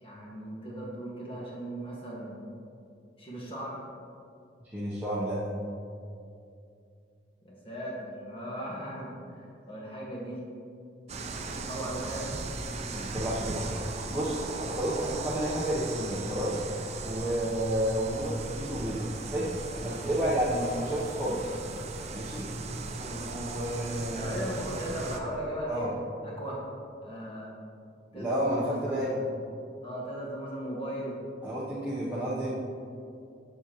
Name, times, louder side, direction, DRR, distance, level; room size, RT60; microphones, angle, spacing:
voice 1, 0.0-2.4 3.2-3.8 7.4-10.4 11.5-12.3 17.1-17.4 24.1-26.6 27.0-27.5 28.1-29.2 29.8-31.2, right 1 dB, 30° left, -5 dB, 1.6 m, -37 dB
voice 2, 4.6-5.5 12.9-13.8 14.1-16.6 17.0-21.6 22.1-22.5 23.0-24.5 25.7-25.9 28.1-29.2 31.4-32.5, right 1 dB, 10° right, -9 dB, 0.8 m, -31 dB
sound 1, 11.1-25.2, right 3 dB, 40° right, 0.5 m, -37 dB
7.2 x 6.7 x 2.9 m, 2.5 s
head